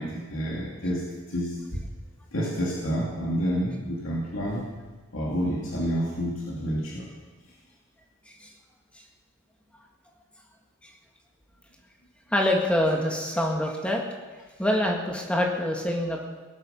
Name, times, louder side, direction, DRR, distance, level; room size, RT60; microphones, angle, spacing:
voice 1, 0.0-1.8 2.3-4.7 5.1-7.1, equal, 80° left, -4 dB, 2.6 m, -29 dB
voice 2, 12.3-14.0 14.6-16.2, left 1 dB, 5° left, 0 dB, 1.8 m, -25 dB
19.0 x 12.0 x 5.4 m, 1.3 s
head